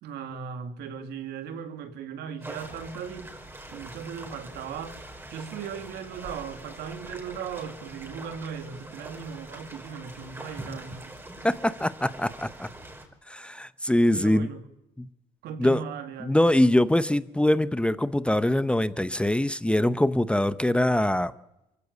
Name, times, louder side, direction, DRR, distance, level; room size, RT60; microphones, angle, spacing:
voice 1, 0.0-3.3 3.7-5.0 5.3-11.1 14.1-14.6 15.4-16.4, right 7 dB, 75° right, 2.5 m, -37 dB
sound 1, 2.4-13.1, right 1 dB, 15° right, 4.6 m, -43 dB
voice 2, 11.4-12.7 13.3-14.5 15.0-15.1 15.6-15.8 16.2-21.3, left 1 dB, 5° left, 0.7 m, -23 dB
24.5 x 15.5 x 8.3 m
cardioid pair, 110°, 17 cm